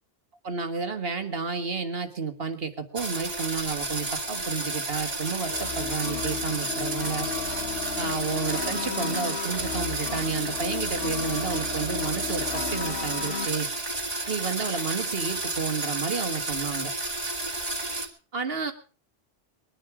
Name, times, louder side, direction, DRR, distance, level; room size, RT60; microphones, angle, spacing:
voice 1, 0.4-7.3 8.0-13.7 14.3-16.9 18.3-18.7, right 5 dB, 60° right, 7 dB, 1.8 m, -31 dB
sound 1, 3.0-18.1, right 2 dB, 35° right, 1.9 m, -32 dB
sound 2, 5.5-13.5, left 6 dB, 60° left, 1.2 m, -34 dB
21.5 x 10.5 x 4.9 m, 0.38 s
omnidirectional pair, 1.1 m